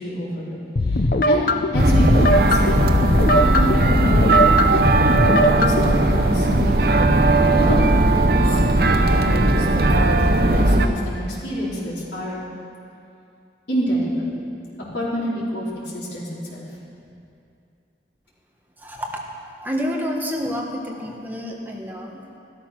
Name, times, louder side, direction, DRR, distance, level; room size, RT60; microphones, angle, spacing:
voice 1, 0.0-1.5 1.7-2.8 3.3-4.3 5.2-8.6 8.9-12.4 13.7-14.3 14.9-16.7, equal, 80° left, -8 dB, 4.3 m, -27 dB
sound 1, 0.8-5.9, left 1 dB, 50° left, 0.6 m, -20 dB
sound 2, 1.8-10.9, right 2 dB, 60° right, 0.8 m, -17 dB
voice 2, 18.8-22.2, equal, 10° right, 0 dB, 1.3 m, -29 dB
13.5 x 12.5 x 6.0 m, 2.5 s
head